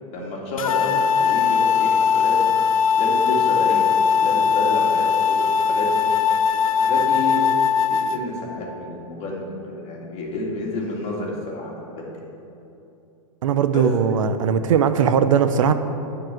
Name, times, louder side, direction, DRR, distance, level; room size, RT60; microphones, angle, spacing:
voice 1, 0.1-2.4 3.0-3.9 4.2-6.1 6.7-7.4 7.8-12.1 13.7-14.2, left 2 dB, 40° left, -2 dB, 2.5 m, -29 dB
sound 1, 0.6-8.2, left 6 dB, 85° left, 0.6 m, -19 dB
voice 2, 13.4-15.7, right 7 dB, 70° right, 10 dB, 0.6 m, -19 dB
10.0 x 4.8 x 7.6 m, 2.9 s
hypercardioid pair, 115°, 17 cm